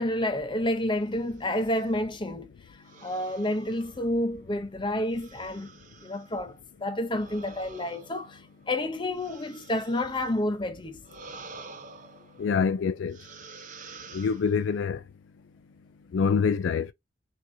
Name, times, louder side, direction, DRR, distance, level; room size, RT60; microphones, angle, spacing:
voice 1, 0.0-5.7 6.0-8.4 8.7-11.0, left 1 dB, 25° left, 0.7 m, -29 dB
sound 1, 1.2-1.9 2.8-4.5 5.1-6.4 7.1-10.5 11.0-12.7 13.1-14.8, right 4 dB, 40° right, 0.6 m, -49 dB
voice 2, 12.4-13.2 14.1-15.0 16.1-16.9, left 6 dB, 70° left, 0.3 m, -25 dB
6.0 x 2.8 x 2.7 m
head